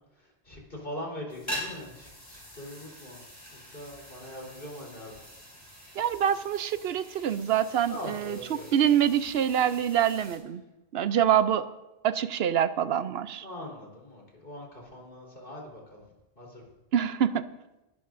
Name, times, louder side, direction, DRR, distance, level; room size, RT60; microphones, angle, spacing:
voice 1, 0.2-3.2 3.5-5.2 7.9-8.9 11.1-11.2 13.4-16.0 16.4-16.6, left 1 dB, 60° left, -2 dB, 4.0 m, -42 dB
sound 1, 1.3-10.4, equal, 25° left, 5.5 m, -44 dB
voice 2, 6.0-8.4 8.7-10.6 10.9-11.7 12.0-13.4 16.9-17.4, right 9 dB, 75° right, 13 dB, 0.8 m, -25 dB
21.0 x 12.5 x 2.6 m, 0.98 s
omnidirectional pair, 1.0 m